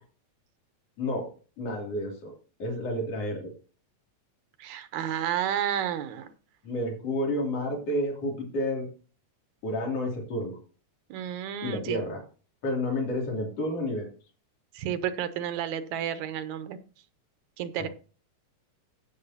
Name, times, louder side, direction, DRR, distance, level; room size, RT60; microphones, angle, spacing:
voice 1, 1.0-1.3 1.6-2.3 2.6-3.5 6.6-8.9 9.6-10.6 11.6-12.2 12.6-14.1 17.8-17.9, left 1 dB, 55° left, -1 dB, 3.8 m, -30 dB
voice 2, 4.6-6.3 11.1-12.0 14.7-16.8 17.6-17.9, right 10 dB, 85° right, 11 dB, 2.2 m, -31 dB
16.5 x 6.8 x 2.8 m, 0.38 s
omnidirectional pair, 3.3 m